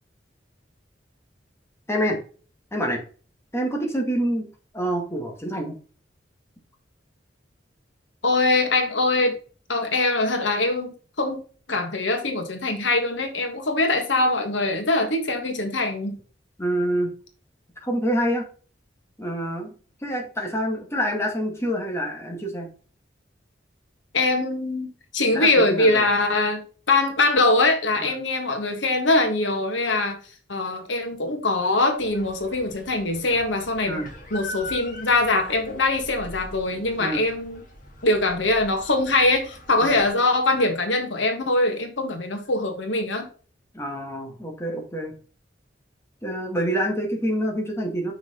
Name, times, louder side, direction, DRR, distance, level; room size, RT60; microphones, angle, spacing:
voice 1, 1.9-2.2 2.7-3.0 3.5-5.8 16.6-17.1 17.8-18.5 19.2-19.7 20.0-22.7 25.3-26.0 28.0-28.1 33.9-34.1 37.0-37.2 39.8-40.0 43.7-45.1 46.2-48.1, equal, 15° left, 2.2 m, -27 dB
voice 2, 8.2-9.3 9.7-11.4 11.7-16.2 24.1-30.2 30.5-34.0 34.3-37.6 38.0-43.3, left 2 dB, 85° left, 1.7 m, -22 dB
sound 1, 32.0-40.1, left 1 dB, 45° left, 2.6 m, -42 dB
7.4 x 6.0 x 3.9 m
head